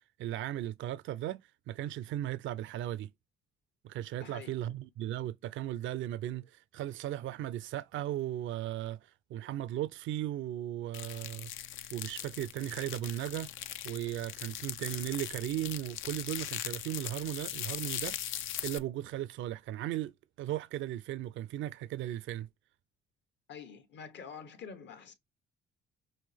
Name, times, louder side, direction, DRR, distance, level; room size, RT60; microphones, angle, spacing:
voice 1, 0.2-1.4 1.7-3.1 3.8-11.5 11.9-13.5 13.8-20.1 20.4-22.5, right 13 dB, 80° right, 0.4 m, -36 dB
voice 2, 4.1-4.8 23.5-25.1, left 6 dB, 65° left, 1.1 m, -47 dB
sound 1, 10.9-18.8, left 11 dB, 80° left, 0.5 m, -40 dB
5.5 x 2.9 x 3.3 m
cardioid pair, 90°, 20 cm